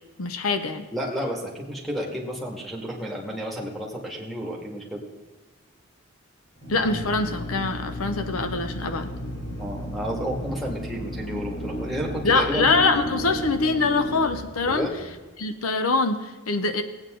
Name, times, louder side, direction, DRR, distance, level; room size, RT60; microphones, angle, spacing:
voice 1, 0.2-0.8 6.7-9.1 11.3-11.4 12.2-14.9 15.4-16.8, left 3 dB, 80° left, 9 dB, 0.8 m, -24 dB
voice 2, 0.9-5.0 9.6-12.7 14.7-14.9, equal, ahead, -3 dB, 2.0 m, -31 dB
Drill, 6.6-15.2, equal, 55° left, 2.4 m, -33 dB
18.5 x 8.8 x 3.8 m, 1.3 s
head